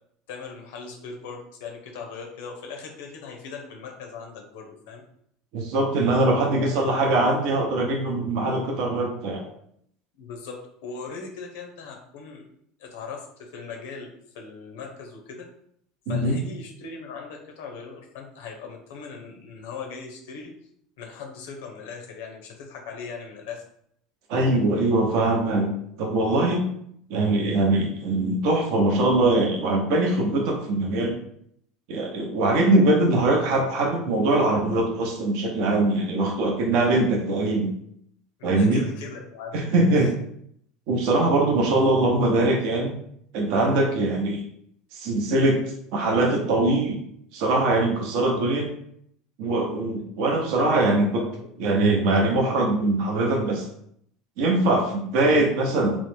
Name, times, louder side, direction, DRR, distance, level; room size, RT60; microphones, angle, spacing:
voice 1, 0.3-5.0 6.5-7.7 8.1-8.8 9.1-9.4 10.2-12.5 12.8-15.5 16.1-20.5 21.0-23.6 38.4-40.1 50.7-50.8 51.1-52.0, left 5 dB, 80° left, 2 dB, 0.7 m, -39 dB
voice 2, 5.5-9.4 16.1-16.4 24.3-25.7 26.0-26.6 27.1-31.2 31.9-37.7 38.4-38.8 39.5-40.1 40.9-42.9 43.3-44.4 44.9-45.6 45.9-47.0 47.3-48.7 49.4-51.3 51.6-53.6 54.4-56.0, right 2 dB, 65° right, 0 dB, 0.6 m, -22 dB
3.0 x 2.0 x 3.2 m, 0.70 s
supercardioid pair, 110°, 0 cm